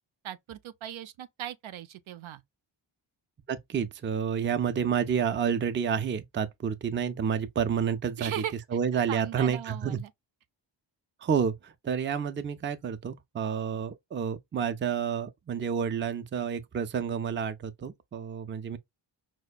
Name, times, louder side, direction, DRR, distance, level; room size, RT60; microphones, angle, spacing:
voice 1, 0.2-2.4 8.2-8.6 9.1-10.1, right 11 dB, 80° right, 0.6 m, -38 dB
voice 2, 3.5-8.4 8.7-10.0 11.2-18.8, right 7 dB, 25° right, 0.4 m, -29 dB
5.0 x 2.1 x 2.3 m
wide cardioid pair, 115°, 48 cm